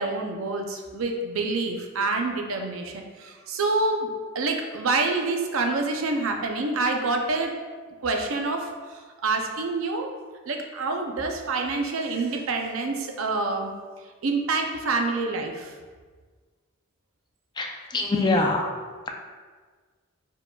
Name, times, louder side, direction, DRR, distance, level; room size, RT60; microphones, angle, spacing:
voice 1, 0.0-7.5 8.0-10.1 10.5-13.7 14.2-15.7, right 3 dB, 80° right, 3 dB, 0.6 m, -27 dB
voice 2, 17.6-18.7, left 2 dB, 20° left, 1 dB, 0.4 m, -24 dB
4.6 x 4.5 x 2.3 m, 1.5 s
head